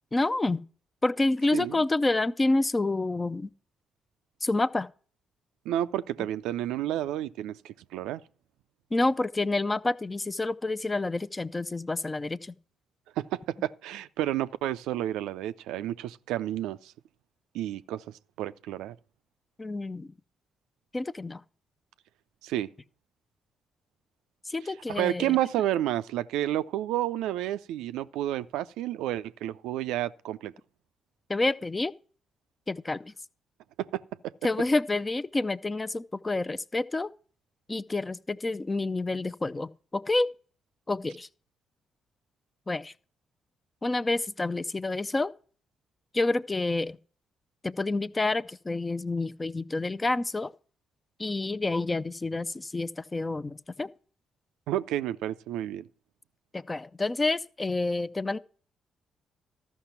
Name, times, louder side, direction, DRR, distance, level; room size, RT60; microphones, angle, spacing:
voice 1, 0.1-0.6 1.0-3.5 4.4-4.9 8.9-12.5 19.6-20.1 20.9-21.4 24.5-25.4 31.3-31.9 32.7-33.1 34.4-37.1 37.7-40.3 40.9-41.3 42.7-42.9 43.8-45.3 46.1-47.0 47.6-50.5 51.2-53.9 56.5-58.4, left 2 dB, 25° left, 0.6 m, -28 dB
voice 2, 1.5-1.8 5.7-8.2 13.2-16.9 17.5-18.0 18.4-19.0 22.4-22.7 24.9-30.5 33.8-34.3 54.7-55.9, right 13 dB, 80° right, 0.4 m, -30 dB
13.0 x 5.8 x 5.7 m
supercardioid pair, 50°, 0 cm